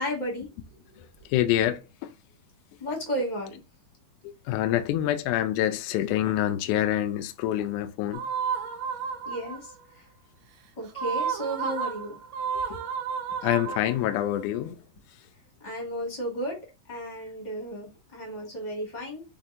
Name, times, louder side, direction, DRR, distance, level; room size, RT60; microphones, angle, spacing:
voice 1, 0.0-1.3 2.8-3.6 9.2-10.1 10.8-12.2 15.6-16.6 16.9-19.2, equal, 20° left, 1.2 m, -34 dB
voice 2, 1.3-2.1 4.2-8.2 12.7-12.8 13.4-14.8, left 12 dB, 80° left, 1.9 m, -26 dB
sound 1, 8.1-9.8 10.9-14.3, right 6 dB, 70° right, 1.8 m, -32 dB
5.8 x 3.4 x 2.6 m
omnidirectional pair, 4.0 m